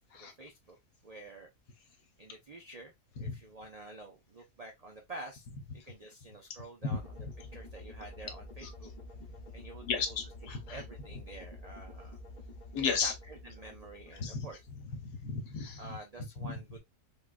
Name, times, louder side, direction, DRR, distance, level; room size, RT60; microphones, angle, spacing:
voice 1, 0.1-0.8 1.0-1.5 2.2-2.9 3.2-5.5 5.7-7.3 7.5-8.9 9.5-10.2 10.7-12.2 13.0-14.6 15.8-16.8, right 2 dB, 75° right, 0.3 m, -48 dB
sound 1, 6.9-15.1, left 2 dB, 40° left, 0.7 m, -49 dB
voice 2, 9.9-10.8 12.7-13.1 14.2-14.5 15.0-16.0 16.4-16.8, left 5 dB, 90° left, 1.5 m, -34 dB
3.7 x 2.3 x 2.4 m
omnidirectional pair, 1.6 m